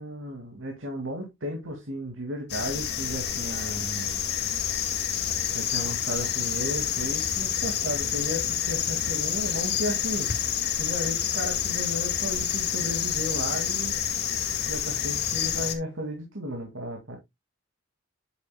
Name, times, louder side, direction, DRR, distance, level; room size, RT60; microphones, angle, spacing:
voice 1, 0.0-4.2 5.5-14.0 14.7-17.2, equal, 80° right, 2.3 m, -34 dB
sound 1, 2.5-15.7, left 9 dB, 60° left, 1.6 m, -28 dB
9.7 x 7.7 x 2.3 m
head